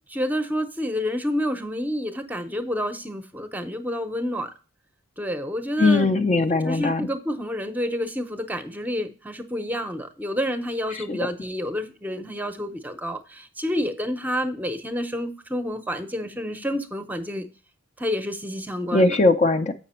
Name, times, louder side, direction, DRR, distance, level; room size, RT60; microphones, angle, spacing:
voice 1, 0.1-4.5 5.2-6.1 6.6-17.5 18.0-19.2, equal, 10° right, 0.7 m, -29 dB
voice 2, 5.8-7.1 10.9-11.2 18.9-19.7, left 3 dB, 30° left, 0.5 m, -20 dB
7.8 x 5.8 x 4.3 m
head